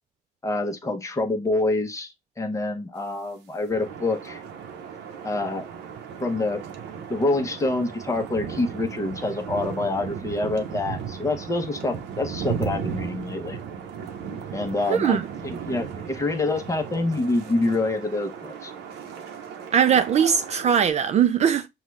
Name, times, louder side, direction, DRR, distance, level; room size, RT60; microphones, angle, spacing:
voice 1, 0.4-4.4 5.2-5.7 6.2-6.6 7.1-13.6 14.5-18.7, left 2 dB, 20° left, 0.9 m, -26 dB
sound 1, 3.7-20.9, right 7 dB, 80° right, 0.8 m, -36 dB
voice 2, 14.9-15.3 19.7-21.7, right 8 dB, 40° right, 0.4 m, -20 dB
5.5 x 2.4 x 3.1 m
cardioid pair, 110°, 17 cm